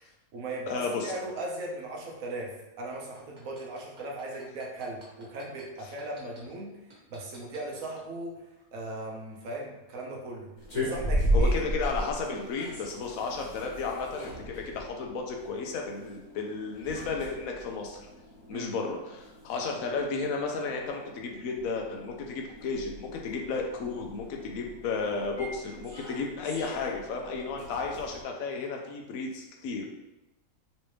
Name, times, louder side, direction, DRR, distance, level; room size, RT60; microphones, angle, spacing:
voice 1, 0.0-6.8 7.1-8.5 8.7-11.5 18.5-18.8, right 2 dB, 80° right, -1 dB, 1.1 m, -38 dB
voice 2, 0.7-1.1 11.3-18.1 18.5-29.9, left 4 dB, 75° left, 2 dB, 1.0 m, -33 dB
sound 1, 3.2-6.4 6.9-8.1 8.5-8.6, right 2 dB, 40° right, 0.8 m, -54 dB
sound 2, 10.6-28.2, equal, 60° left, 1.3 m, -36 dB
3.1 x 3.1 x 3.2 m, 0.98 s
omnidirectional pair, 1.5 m